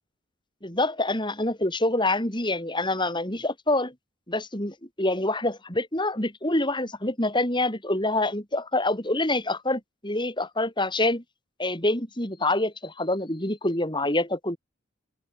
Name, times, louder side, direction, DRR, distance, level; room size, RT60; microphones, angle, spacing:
voice 1, 0.6-3.9 4.3-11.2 11.6-14.6, left 2 dB, 25° left, 6.9 m, -26 dB
open air
head